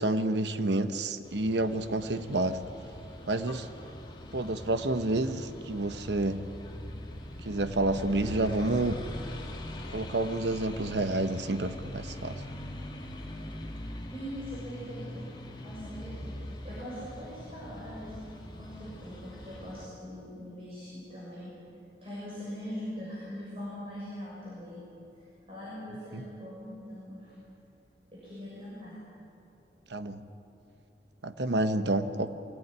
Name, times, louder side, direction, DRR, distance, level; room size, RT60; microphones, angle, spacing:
voice 1, 0.0-2.6 3.3-3.7 4.3-6.5 7.4-9.0 9.9-12.4 26.1-26.2 29.9-30.2 31.2-32.3, right 2 dB, 80° right, 10 dB, 1.0 m, -29 dB
sound 1, 1.2-19.9, left 1 dB, 25° left, 1.9 m, -42 dB
voice 2, 14.1-15.2 15.6-16.4 16.6-21.5 22.0-24.8 25.1-27.3 28.1-29.0, equal, 35° right, -8 dB, 6.7 m, -42 dB
24.0 x 18.0 x 9.6 m, 2.9 s
head